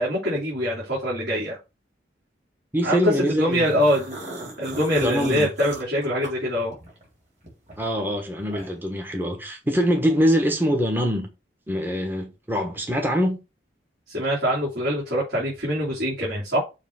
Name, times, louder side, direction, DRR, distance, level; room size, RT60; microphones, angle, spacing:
voice 1, 0.0-1.6 2.8-4.2 4.6-6.7 14.1-16.6, equal, 60° right, 3.4 m, -24 dB
voice 2, 2.7-3.8 5.0-5.5 7.8-11.3 11.7-13.4, equal, 10° right, 1.1 m, -24 dB
sound 1, 3.5-7.1 7.4-8.9, right 2 dB, 35° right, 3.3 m, -39 dB
7.1 x 3.1 x 5.8 m
head